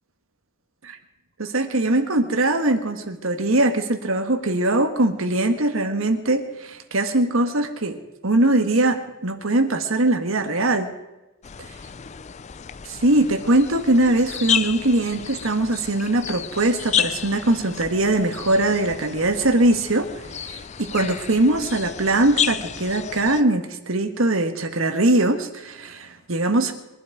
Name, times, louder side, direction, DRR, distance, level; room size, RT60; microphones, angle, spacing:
voice 1, 1.4-8.0 8.2-10.9 12.8-20.1 20.3-26.7, right 2 dB, 75° right, 8 dB, 1.6 m, -21 dB
sound 1, 11.4-23.4, left 9 dB, 35° left, 0.4 m, -31 dB
23.0 x 11.5 x 4.7 m, 1.0 s
head